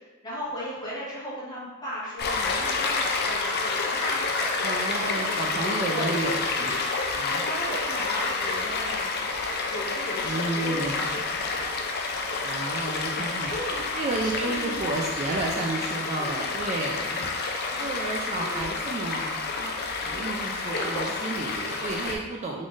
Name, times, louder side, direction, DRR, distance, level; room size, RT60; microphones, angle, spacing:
voice 1, 0.2-4.7 5.0-5.3 5.9-6.1 7.3-11.8 13.5-13.8 14.4-15.0 16.2-16.5 17.6-17.9 18.4-18.6 20.0-20.3 20.6-21.2 21.7-21.8, equal, 20° left, -8 dB, 1.2 m, -36 dB
Stream, 2.2-22.1, left 4 dB, 50° left, 0.4 m, -29 dB
voice 2, 4.6-6.9 7.1-7.4 10.2-11.1 12.4-17.3 17.8-19.8 20.0-22.7, right 2 dB, 30° right, 0 dB, 0.3 m, -32 dB
3.7 x 3.6 x 2.4 m, 1.2 s
head